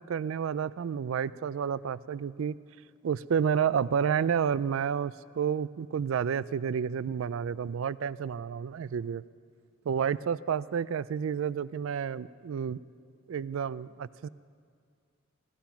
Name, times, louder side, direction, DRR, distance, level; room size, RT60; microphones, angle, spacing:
voice 1, 0.0-2.6 3.0-9.2 9.9-12.8 13.3-14.3, right 7 dB, 75° right, 18 dB, 0.3 m, -30 dB
16.5 x 14.0 x 5.8 m, 2.1 s
head